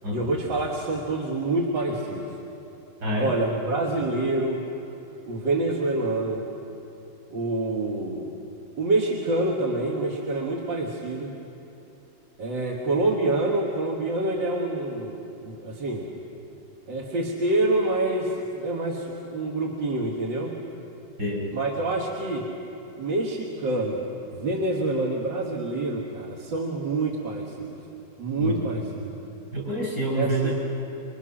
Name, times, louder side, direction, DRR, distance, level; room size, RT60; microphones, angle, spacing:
voice 1, 0.1-2.3 3.2-4.6 5.2-6.4 7.3-8.3 8.8-11.3 12.4-16.1 16.9-20.5 21.5-22.5 23.0-24.1 24.4-27.8 28.2-28.9 30.1-30.5, right 2 dB, 85° right, -1 dB, 2.3 m, -27 dB
voice 2, 3.0-3.3 21.2-21.5 28.4-28.8 29.5-30.5, right 1 dB, 60° right, -1 dB, 6.6 m, -27 dB
26.0 x 23.0 x 6.4 m, 2.9 s
omnidirectional pair, 2.0 m